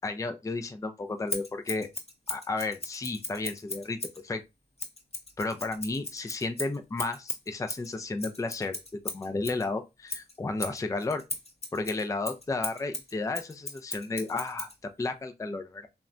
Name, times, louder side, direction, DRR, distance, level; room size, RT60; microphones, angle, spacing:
voice 1, 0.0-1.9 2.3-4.0 4.2-4.4 5.4-11.2 11.7-14.7 15.0-15.9, left 3 dB, 20° left, 0.4 m, -33 dB
Scissors, 1.3-4.2 4.8-9.7 10.1-14.8, left 2 dB, 35° left, 0.9 m, -38 dB
3.1 x 2.1 x 2.4 m
cardioid pair, 50°, 18 cm